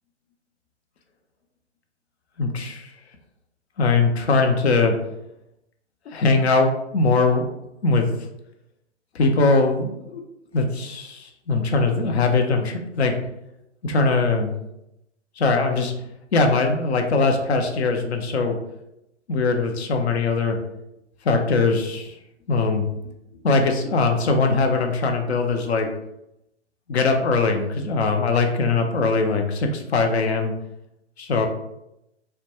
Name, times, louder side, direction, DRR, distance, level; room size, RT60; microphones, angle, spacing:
voice 1, 2.4-2.9 3.8-4.9 6.1-7.4 7.8-8.1 9.1-10.2 10.5-13.2 13.8-14.6 15.4-15.9 16.3-18.6 19.3-20.6 21.2-22.2 22.5-22.9 23.4-25.9 26.9-30.5 31.2-31.5, left 3 dB, 60° left, 4 dB, 0.5 m, -21 dB
2.2 x 2.1 x 2.8 m, 0.86 s
figure-of-eight pair, 130°, 36 cm